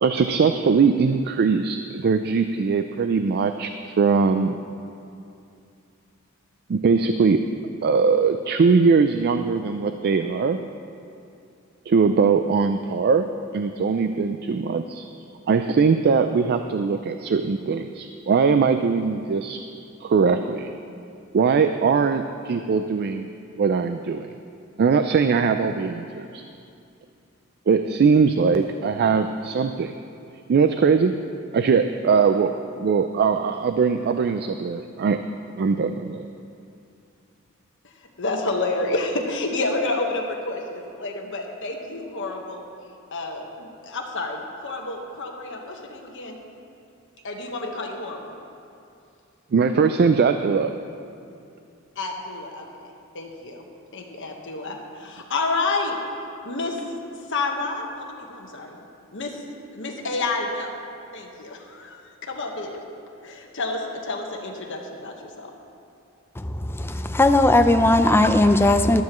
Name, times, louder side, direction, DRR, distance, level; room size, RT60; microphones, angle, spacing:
voice 1, 0.0-4.6 6.7-7.4 7.8-10.6 11.9-13.3 13.5-15.1 15.5-19.6 20.0-20.7 21.3-23.3 23.6-24.4 24.8-26.4 27.7-29.9 30.5-31.1 31.5-32.5 32.8-35.2 35.6-36.3 49.5-50.7, right 5 dB, 50° right, 8 dB, 0.4 m, -21 dB
voice 2, 37.8-42.6 43.1-46.4 47.2-48.3 52.0-53.7 53.9-56.0 56.4-56.8 57.3-58.8 59.1-59.4 59.7-60.8 61.1-62.8 63.2-65.5, left 3 dB, 60° left, 1 dB, 1.3 m, -29 dB
voice 3, 66.4-69.0, left 2 dB, 10° left, 7 dB, 0.4 m, -18 dB
14.5 x 12.0 x 3.1 m, 2.6 s
head